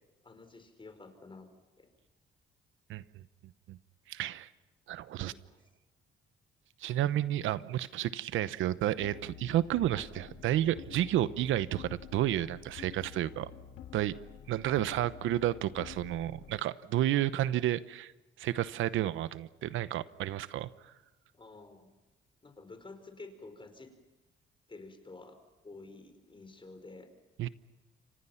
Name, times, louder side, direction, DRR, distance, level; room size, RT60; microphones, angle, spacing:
voice 1, 0.2-1.5 1.8-1.9 5.2-5.6 9.9-10.1 21.3-21.9 22.4-24.0 24.7-25.4 25.6-27.1, left 3 dB, 25° left, 8 dB, 4.8 m, -50 dB
voice 2, 4.1-4.5 4.9-5.3 6.8-13.5 13.9-14.2 14.5-18.1 18.4-20.9 27.4-27.5, right 13 dB, 85° right, 15 dB, 1.0 m, -31 dB
sound 1, 9.0-16.6, left 9 dB, 90° left, 1.8 m, -49 dB
29.0 x 25.5 x 5.8 m, 1.1 s
cardioid pair, 90°, 20 cm